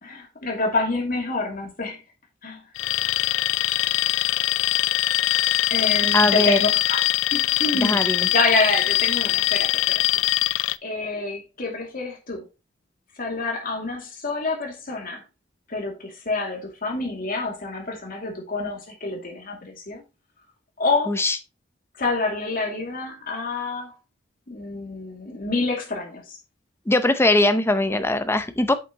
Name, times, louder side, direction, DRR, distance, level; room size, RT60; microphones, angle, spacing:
voice 1, 0.0-2.0 2.4-2.6 5.3-5.4 5.7-7.0 7.3-10.1 10.8-12.5 13.2-15.2 15.7-20.0 20.8-21.2 22.0-24.0 24.5-26.4, left 3 dB, 50° left, 2.4 m, -27 dB
Alarm, 2.8-10.8, left 16 dB, 85° left, 0.3 m, -22 dB
voice 2, 6.1-6.7 7.8-8.3 21.1-21.4 26.9-28.7, left 2 dB, 15° left, 0.6 m, -21 dB
8.3 x 6.5 x 2.9 m
head